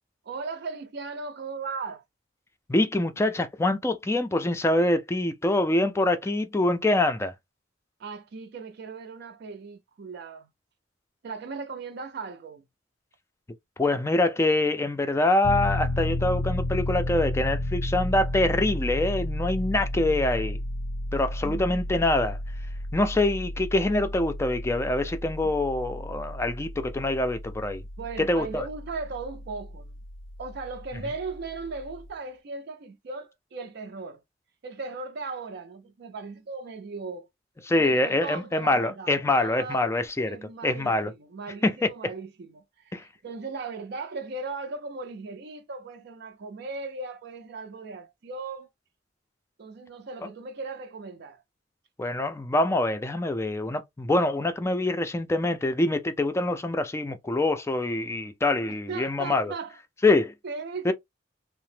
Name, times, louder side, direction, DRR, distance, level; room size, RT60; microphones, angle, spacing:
voice 1, 0.2-2.0 8.0-10.5 11.2-12.6 21.4-21.6 25.4-25.5 28.0-30.0 30.4-34.2 34.6-37.3 37.8-40.0 40.2-48.7 49.6-51.4 58.9-59.8 60.4-60.9, right 4 dB, 60° right, 0.4 m, -37 dB
voice 2, 2.7-7.3 13.8-20.6 21.1-22.4 22.9-27.8 28.2-28.7 37.7-40.4 40.6-41.1 41.6-41.9 42.9-43.0 52.0-59.5 60.0-60.3 60.8-60.9, left 2 dB, 15° left, 0.3 m, -25 dB
Piano, 15.4-32.1, left 1 dB, 90° left, 0.6 m, -33 dB
2.8 x 2.0 x 3.2 m
head